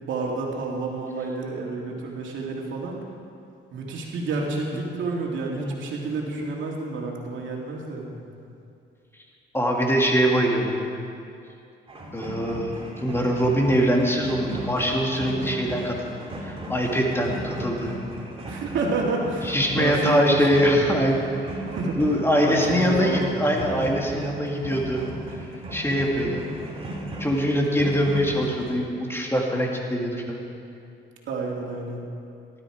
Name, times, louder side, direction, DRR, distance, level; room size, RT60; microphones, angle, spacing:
voice 1, 0.0-3.0 3.7-8.1 18.4-21.1 21.7-22.0 22.4-23.5 31.3-32.0, right 3 dB, 70° right, -1 dB, 2.6 m, -29 dB
voice 2, 9.5-10.9 12.1-16.1 16.4-18.0 19.4-21.2 22.0-25.0 25.7-26.4 27.2-30.4, equal, 10° left, -1 dB, 2.4 m, -23 dB
sound 1, 11.9-28.8, right 2 dB, 30° right, 2.8 m, -36 dB
18.0 x 12.0 x 5.1 m, 2.5 s
cardioid pair, 90°, 20 cm